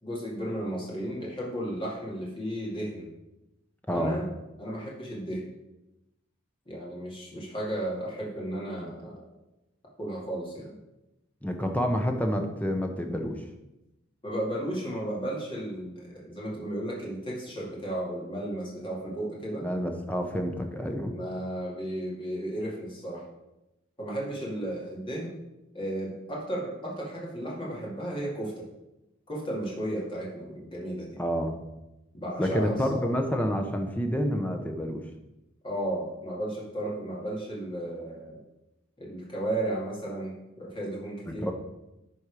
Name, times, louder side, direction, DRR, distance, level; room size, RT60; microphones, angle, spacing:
voice 1, 0.0-3.1 3.9-4.3 4.6-5.4 6.7-9.2 10.0-10.8 14.2-19.6 21.0-23.2 24.0-25.3 25.7-28.6 29.3-31.2 32.1-33.1 35.6-38.4 39.0-41.5, right 1 dB, 25° left, -4 dB, 2.5 m, -34 dB
voice 2, 3.9-4.2 11.4-13.4 19.6-21.2 31.2-31.6 32.4-35.0 41.4-41.5, equal, 5° left, 4 dB, 0.8 m, -28 dB
11.5 x 4.4 x 4.9 m, 0.95 s
head